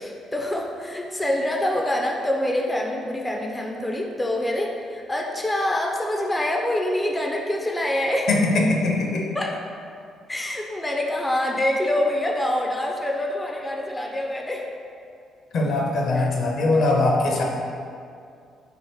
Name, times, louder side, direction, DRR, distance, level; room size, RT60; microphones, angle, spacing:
voice 1, 0.0-8.3 9.3-9.7 10.3-14.7 16.1-16.3, left 1 dB, 15° left, 0 dB, 0.4 m, -25 dB
voice 2, 8.3-9.3 15.5-17.4, left 2 dB, 65° left, 0 dB, 0.6 m, -21 dB
3.5 x 2.5 x 4.3 m, 2.4 s
cardioid pair, 85°, 0 cm